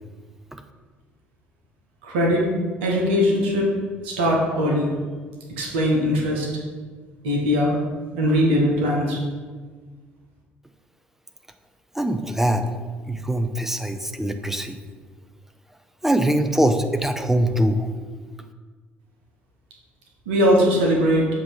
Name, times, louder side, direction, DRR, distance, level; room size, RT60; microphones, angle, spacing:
voice 1, 2.0-2.5 2.8-3.7 4.0-4.9 5.6-6.5 7.2-7.8 8.2-9.2 20.3-21.3, equal, 75° right, -1 dB, 1.1 m, -20 dB
voice 2, 11.9-12.7 13.1-14.8 16.0-17.9, right 1 dB, 5° right, 7 dB, 0.6 m, -22 dB
7.4 x 2.9 x 4.8 m, 1.5 s
figure-of-eight pair, 50°, 6 cm